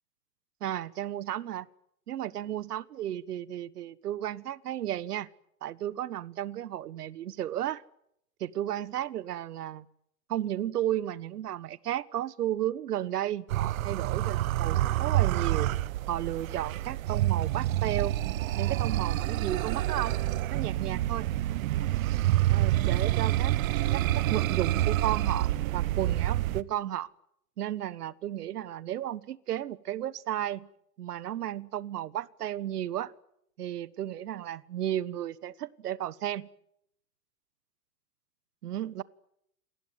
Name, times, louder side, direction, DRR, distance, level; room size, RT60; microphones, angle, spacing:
voice 1, 0.6-1.7 2.1-5.3 5.6-7.8 8.4-9.8 10.3-15.7 16.1-20.2 20.5-21.3 22.5-23.5 23.9-27.1 27.6-30.7 31.0-33.1 33.6-36.5 38.6-39.0, right 12 dB, 80° right, 20 dB, 1.4 m, -33 dB
sound 1, 13.5-26.6, right 14 dB, 60° right, 1.3 m, -27 dB
28.5 x 20.0 x 9.5 m, 0.75 s
hypercardioid pair, 130°, 46 cm